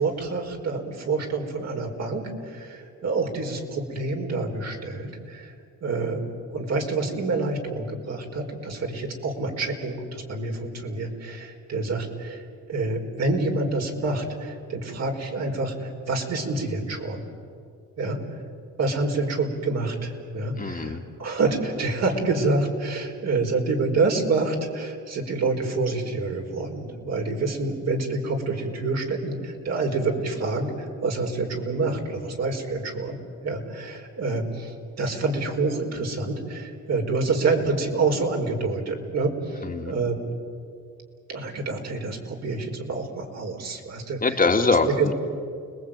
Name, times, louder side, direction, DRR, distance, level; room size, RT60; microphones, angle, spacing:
voice 1, 0.0-5.5 5.8-6.2 6.5-12.4 12.7-17.2 18.0-18.2 18.8-30.7 31.0-33.2 33.4-40.1 41.3-44.2 44.9-45.1, right 3 dB, 60° right, 2 dB, 5.0 m, -27 dB
voice 2, 20.6-21.0 39.6-39.9 44.2-45.1, left 3 dB, 30° left, 3 dB, 2.4 m, -23 dB
30.0 x 21.0 x 9.1 m, 2.3 s
cardioid pair, 90°, 30 cm